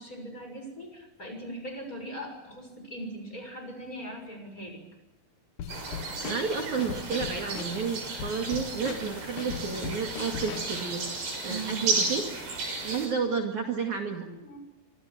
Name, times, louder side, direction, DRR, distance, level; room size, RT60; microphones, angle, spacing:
voice 1, 0.0-4.8 8.4-8.6 11.4-11.9 14.1-14.6, right 1 dB, 20° left, 5 dB, 6.8 m, -40 dB
Drum kit / Snare drum, 5.6-10.8, left 8 dB, 60° left, 2.5 m, -39 dB
sound 1, 5.7-13.1, right 4 dB, 75° right, 8.7 m, -34 dB
voice 2, 6.2-11.1 11.4-12.2 12.8-14.3, right 5 dB, 50° right, 2 dB, 3.3 m, -31 dB
26.0 x 26.0 x 7.6 m, 0.98 s
omnidirectional pair, 4.7 m